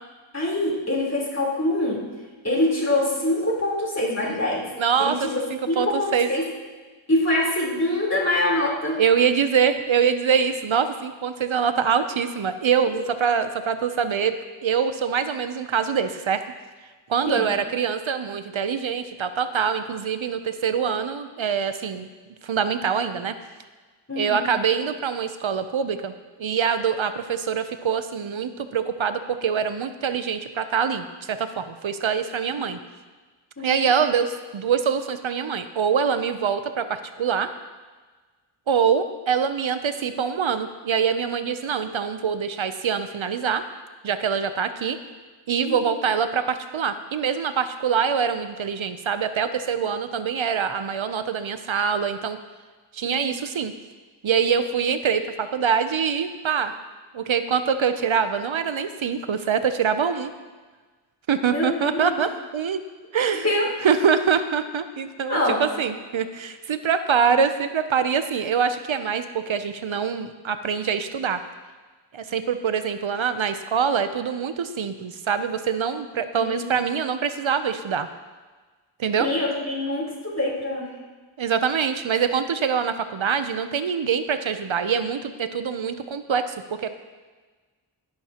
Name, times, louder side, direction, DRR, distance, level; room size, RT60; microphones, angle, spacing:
voice 1, 0.3-2.0 2.4-4.7 5.0-5.4 5.7-6.4 7.1-9.0 12.9-13.0 17.3-17.5 24.1-24.5 33.6-33.9 45.7-45.9 53.0-53.3 61.5-62.2 63.4-63.7 65.3-65.6 76.3-76.8 79.2-80.9, left 1 dB, 30° left, -4 dB, 3.8 m, -24 dB
voice 2, 4.8-6.3 9.0-14.4 14.6-16.4 17.1-22.1 22.4-23.3 24.2-26.1 26.4-32.8 33.6-37.5 38.7-43.6 44.0-45.0 45.5-52.4 52.9-53.7 54.2-56.7 57.1-60.3 61.3-62.8 63.1-63.4 63.8-71.4 72.1-78.1 79.0-79.3 81.4-87.0, right 7 dB, 75° right, 10 dB, 0.7 m, -24 dB
16.5 x 10.5 x 2.9 m, 1.3 s
wide cardioid pair, 50°, 48 cm